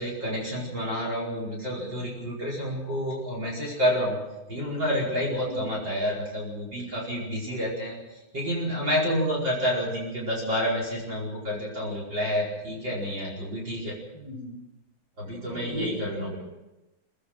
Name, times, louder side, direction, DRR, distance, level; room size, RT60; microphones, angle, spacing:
voice 1, 0.0-4.2 4.5-7.9 8.3-14.0 15.2-16.4, equal, 30° right, -2 dB, 5.4 m, -29 dB
voice 2, 14.1-14.6 15.4-16.4, right 1 dB, 80° right, -1 dB, 6.9 m, -36 dB
23.0 x 19.0 x 6.3 m, 0.98 s
omnidirectional pair, 4.0 m